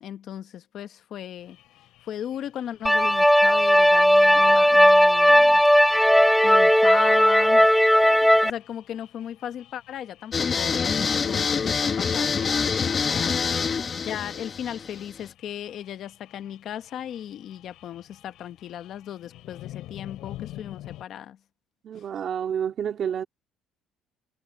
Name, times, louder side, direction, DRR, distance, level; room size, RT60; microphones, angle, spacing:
voice 1, 0.0-1.6 2.0-5.6 6.4-7.7 8.0-13.5 13.9-21.4, left 10 dB, 50° left, 1.0 m, -37 dB
sound 1, 1.4-21.0, left 15 dB, 70° left, 4.3 m, -49 dB
sound 2, 2.9-8.5, equal, ahead, 0.4 m, -17 dB
sound 3, 10.3-15.3, left 5 dB, 25° left, 1.3 m, -26 dB
voice 2, 21.8-23.3, right 8 dB, 40° right, 2.4 m, -29 dB
cardioid pair, 165°, 0 cm